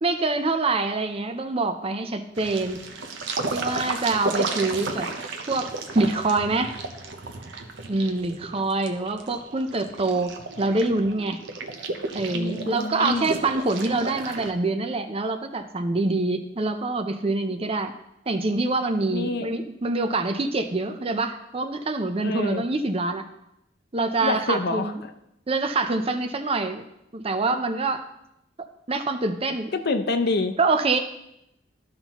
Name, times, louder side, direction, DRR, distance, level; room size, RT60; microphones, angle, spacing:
voice 1, 0.0-2.8 3.5-5.1 5.5-6.7 7.9-10.3 10.6-11.4 12.1-17.9 18.3-23.3 23.9-25.0 25.5-26.8 27.1-28.0 28.9-29.7 30.6-31.0, right 3 dB, 30° right, 8 dB, 0.6 m, -25 dB
sound 1, 2.4-14.5, right 3 dB, 70° right, 0.8 m, -33 dB
voice 2, 12.3-13.3 19.1-19.5 22.2-22.6 24.2-25.1 29.7-30.6, left 3 dB, 60° left, 8 dB, 0.7 m, -27 dB
13.0 x 5.6 x 3.0 m, 0.83 s
head